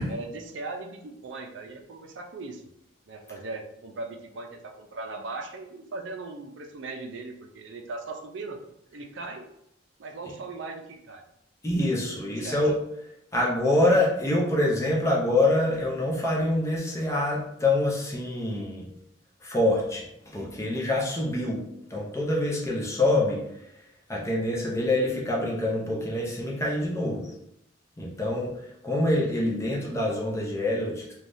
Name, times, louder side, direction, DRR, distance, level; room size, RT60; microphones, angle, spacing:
voice 1, 0.0-2.6 3.1-8.6 8.9-9.4 10.0-11.2 12.4-12.6, right 3 dB, 75° right, 4 dB, 0.4 m, -38 dB
voice 2, 11.6-12.8 13.3-18.9 19.4-23.7 24.1-27.3 28.0-31.1, left 1 dB, 15° left, -3 dB, 0.5 m, -26 dB
3.3 x 2.3 x 2.5 m, 0.78 s
head